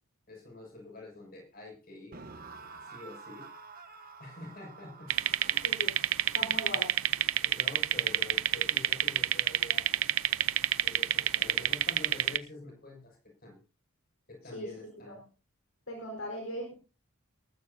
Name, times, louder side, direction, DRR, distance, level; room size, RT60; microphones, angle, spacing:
voice 1, 0.3-2.2 2.8-5.1 5.4-5.8 6.2-6.5 7.4-10.0 10.8-13.6 14.3-15.2, left 2 dB, 40° left, 1 dB, 6.5 m, -47 dB
sound 1, 2.1-9.2, right 4 dB, 40° right, 1.2 m, -51 dB
sound 2, 5.1-12.4, right 12 dB, 70° right, 0.7 m, -28 dB
voice 2, 5.6-5.9 6.3-7.0 14.5-15.2 15.9-16.7, equal, 65° left, 1 dB, 4.6 m, -39 dB
19.5 x 14.5 x 2.8 m, 0.33 s
head